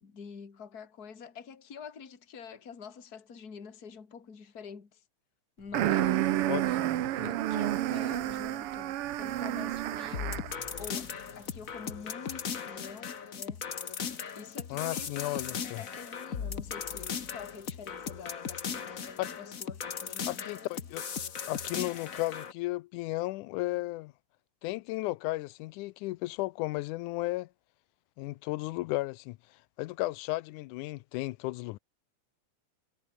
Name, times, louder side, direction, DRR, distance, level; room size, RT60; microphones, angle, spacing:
voice 1, 0.0-5.0 5.6-6.5 7.2-10.5 10.8-13.7 14.3-20.5, left 6 dB, 30° left, 2.9 m, -46 dB
sound 1, 5.7-10.6, right 13 dB, 70° right, 1.3 m, -30 dB
voice 2, 6.5-7.1 14.7-15.8 19.2-19.3 20.3-21.0 21.5-24.1 24.6-27.5 28.2-29.4 29.8-31.8, left 20 dB, 85° left, 2.1 m, -34 dB
sound 2, 10.1-22.5, left 6 dB, 45° left, 1.0 m, -38 dB
omnidirectional pair, 3.6 m